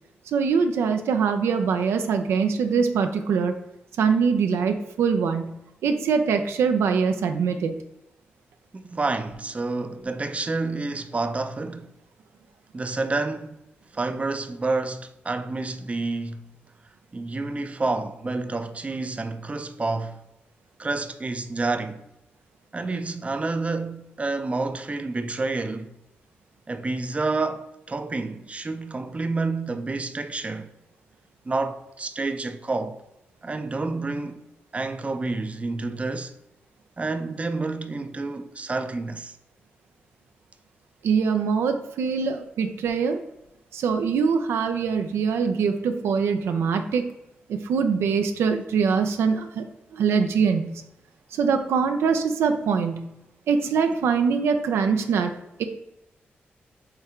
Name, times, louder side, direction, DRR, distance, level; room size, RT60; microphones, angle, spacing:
voice 1, 0.3-3.5 4.0-5.6 5.8-7.8 41.0-43.2 43.7-47.1 47.5-49.6 49.9-50.8 51.3-53.1 53.5-55.3 55.6-55.7, right 6 dB, 90° right, 0.4 m, -23 dB
voice 2, 8.7-11.9 12.7-13.6 13.9-16.4 17.1-20.2 20.8-22.0 22.7-25.9 26.7-30.7 31.5-33.0 33.4-34.4 34.7-36.3 37.0-39.4, right 3 dB, 30° right, 0.5 m, -29 dB
4.5 x 3.3 x 3.5 m
cardioid pair, 60°, 4 cm